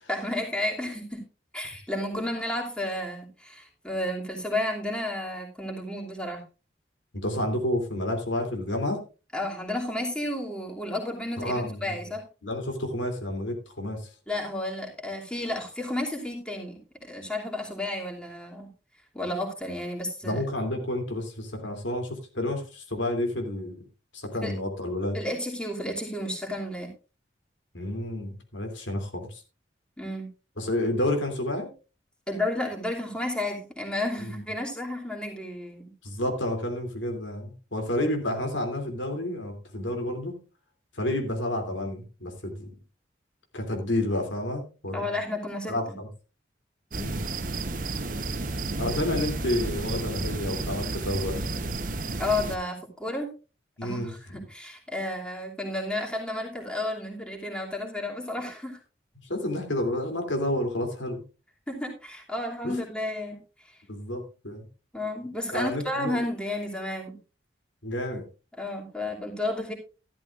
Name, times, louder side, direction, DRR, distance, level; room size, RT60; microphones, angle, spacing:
voice 1, 0.1-1.2 1.5-6.4 9.3-12.2 14.3-18.7 19.1-20.4 24.4-24.5 25.1-26.9 30.0-30.3 32.3-35.9 44.9-46.0 52.2-53.3 53.8-58.8 61.7-63.8 64.9-67.1 68.6-69.7, left 1 dB, 5° left, -1 dB, 2.8 m, -32 dB
voice 2, 7.2-9.0 11.4-12.0 12.4-14.0 20.2-23.8 24.1-25.2 27.7-29.4 30.6-31.7 34.2-34.4 36.0-40.4 40.9-42.7 43.5-45.2 45.7-46.1 46.9-47.2 48.8-51.5 53.8-54.4 59.2-61.2 62.6-62.8 63.9-64.7 65.5-66.2 67.8-68.2, left 1 dB, 90° left, 4 dB, 3.0 m, -30 dB
sound 1, 46.9-52.6, right 3 dB, 45° right, 1.0 m, -31 dB
13.5 x 12.0 x 2.5 m, 0.32 s
head